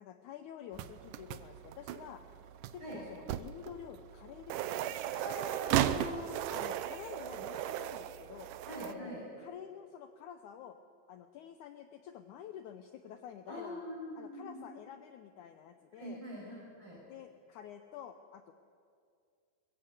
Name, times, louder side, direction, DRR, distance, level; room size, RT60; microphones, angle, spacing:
voice 1, 0.0-2.2 2.7-5.0 5.8-6.2 6.5-8.5 8.9-10.8 11.1-13.8 14.2-16.2 17.1-18.5, left 9 dB, 70° left, 8 dB, 2.0 m, -49 dB
sound 1, 0.7-8.9, right 12 dB, 75° right, 2.2 m, -36 dB
voice 2, 5.1-6.4 8.7-9.2 13.5-14.6 16.0-17.0, equal, 35° right, -5 dB, 6.1 m, -43 dB
24.0 x 22.0 x 8.1 m, 2.3 s
omnidirectional pair, 4.1 m